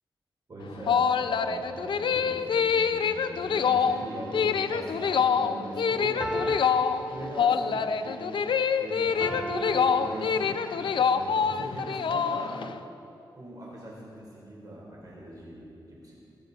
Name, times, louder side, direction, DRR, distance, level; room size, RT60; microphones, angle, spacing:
voice 1, 0.5-6.6 7.1-8.3 8.8-10.4 11.0-12.7 13.4-16.2, right 1 dB, 45° right, -4 dB, 3.5 m, -40 dB
sound 1, 0.6-12.7, left 6 dB, 75° left, 0.5 m, -26 dB
sound 2, 3.9-5.2 6.2-7.9 9.2-10.9 11.6-11.7, right 1 dB, 5° right, 2.1 m, -37 dB
16.5 x 13.5 x 4.0 m, 2.6 s
wide cardioid pair, 85°, 8 cm